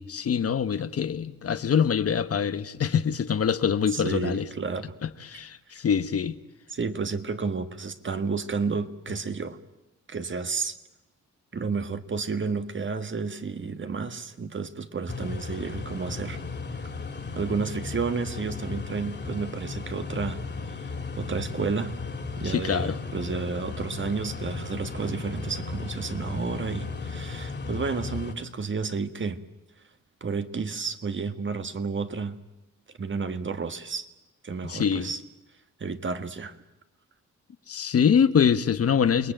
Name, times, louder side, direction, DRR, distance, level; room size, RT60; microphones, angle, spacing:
voice 1, 0.0-4.5 5.0-6.4 22.4-23.0 26.4-26.6 34.6-35.1 37.7-39.3, left 7 dB, 50° left, 1.1 m, -24 dB
voice 2, 3.9-4.9 6.7-9.6 10.1-10.8 11.5-16.4 17.3-20.4 20.7-20.9 21.2-22.0 22.4-29.4 30.2-32.4 33.0-34.1 34.4-35.2 35.8-36.6, right 4 dB, 40° right, 1.6 m, -31 dB
sound 1, 15.1-28.3, left 4 dB, 35° left, 2.7 m, -35 dB
28.5 x 19.5 x 9.0 m
cardioid pair, 85°, 30 cm